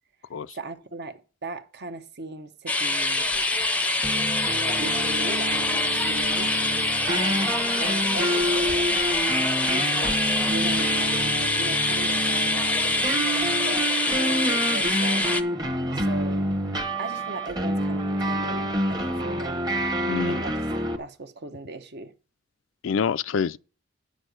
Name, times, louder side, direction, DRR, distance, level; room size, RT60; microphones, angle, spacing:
voice 1, 0.5-3.3 4.6-6.5 7.1-8.9 9.7-15.3 15.9-16.5 17.0-19.7 20.2-20.6 21.0-22.1, right 2 dB, 55° right, 0.9 m, -38 dB
sound 1, 2.7-15.4, left 2 dB, 5° left, 0.6 m, -25 dB
sound 2, 4.0-21.0, right 1 dB, 20° right, 1.0 m, -28 dB
voice 2, 20.1-20.4 22.8-23.6, left 6 dB, 70° left, 0.4 m, -26 dB
9.4 x 6.4 x 6.6 m
head